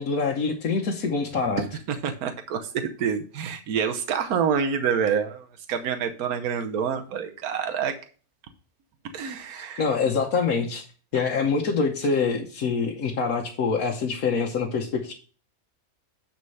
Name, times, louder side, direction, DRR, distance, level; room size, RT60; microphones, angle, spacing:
voice 1, 0.0-1.6 9.5-10.8 11.1-15.1, left 5 dB, 75° left, -1 dB, 1.4 m, -25 dB
voice 2, 1.6-7.9 9.1-9.8, right 7 dB, 80° right, 6 dB, 1.3 m, -27 dB
9.5 x 4.4 x 5.4 m, 0.39 s
omnidirectional pair, 1.6 m